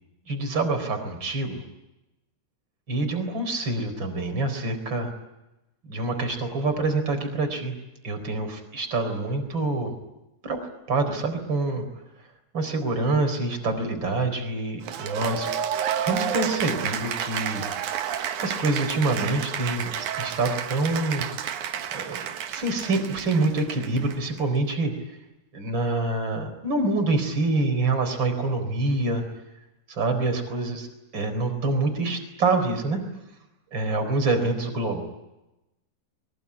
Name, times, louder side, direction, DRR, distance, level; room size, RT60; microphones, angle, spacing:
voice 1, 0.3-1.6 2.9-5.1 5.9-7.7 8.0-9.9 10.4-10.6 10.9-11.9 12.5-15.5 16.0-17.6 18.0-18.1 18.4-21.2 21.9-22.2 22.5-24.9 25.5-29.2 29.9-30.9 31.1-33.0 33.7-35.0, right 2 dB, 25° right, 6 dB, 4.3 m, -26 dB
Cheering / Applause, 14.8-24.4, right 8 dB, 75° right, 1.8 m, -30 dB
24.0 x 22.5 x 9.8 m, 0.97 s
omnidirectional pair, 5.7 m